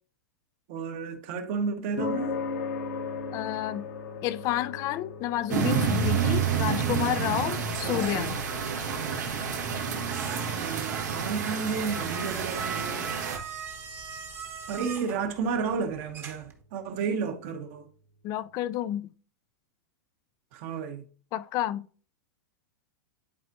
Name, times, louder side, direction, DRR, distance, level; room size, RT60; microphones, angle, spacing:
voice 1, 0.7-2.3 7.6-8.4 10.5-13.1 14.7-17.9 20.5-21.0, right 5 dB, 50° right, 1.3 m, -32 dB
sound 1, 2.0-18.5, left 4 dB, 70° left, 1.1 m, -41 dB
voice 2, 3.3-3.8 4.2-8.4 18.2-19.1 21.3-21.9, left 13 dB, 40° left, 0.4 m, -30 dB
sound 2, 5.5-13.4, right 6 dB, 80° right, 1.7 m, -29 dB
sound 3, 10.1-16.6, right 5 dB, 25° right, 1.1 m, -41 dB
11.5 x 4.3 x 2.6 m
hypercardioid pair, 115°, 9 cm